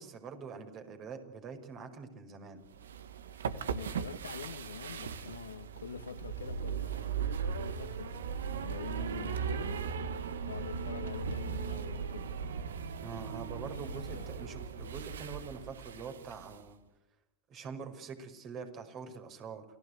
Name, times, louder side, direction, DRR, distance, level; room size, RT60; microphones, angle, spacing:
voice 1, 0.0-2.6 12.9-16.8 17.5-19.6, right 5 dB, 40° right, 5.5 m, -45 dB
sound 1, 2.7-16.6, right 6 dB, 80° right, 1.7 m, -38 dB
voice 2, 3.7-7.3 7.6-8.1 8.5-9.8 10.5-12.3 13.8-14.3, left 7 dB, 90° left, 1.8 m, -45 dB
28.5 x 17.0 x 8.3 m
hypercardioid pair, 95°, 0 cm